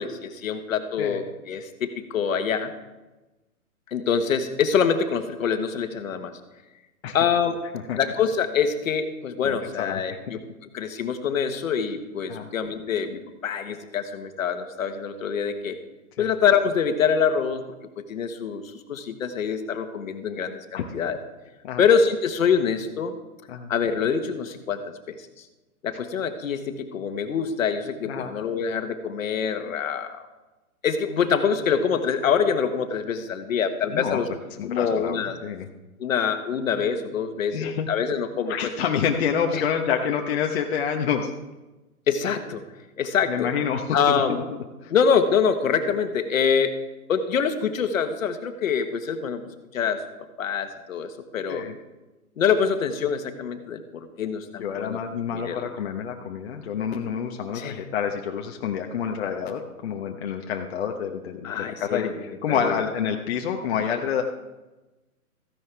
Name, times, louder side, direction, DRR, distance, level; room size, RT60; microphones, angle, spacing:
voice 1, 0.0-2.7 3.9-6.3 7.1-7.6 8.0-10.4 10.7-15.8 16.2-17.6 18.0-21.2 21.8-23.1 23.7-25.2 25.8-30.3 30.8-34.3 34.6-35.4 36.0-38.7 39.5-39.6 42.1-42.6 43.0-43.5 43.9-44.4 44.9-46.7 47.1-49.4 49.7-50.0 50.4-51.6 52.4-55.0 55.3-55.7 57.5-57.8 61.4-62.1 62.5-62.8, left 6 dB, 60° left, 8 dB, 1.5 m, -25 dB
voice 2, 9.4-10.2 12.3-12.5 16.2-16.3 20.7-20.9 21.6-21.8 23.5-23.7 28.1-28.3 33.9-34.2 34.6-35.7 37.5-37.9 38.5-41.3 43.3-44.2 44.8-44.9 51.5-51.8 54.6-64.2, left 7 dB, 45° left, 2 dB, 1.0 m, -28 dB
15.0 x 10.5 x 3.4 m, 1.1 s
hypercardioid pair, 145°, 45 cm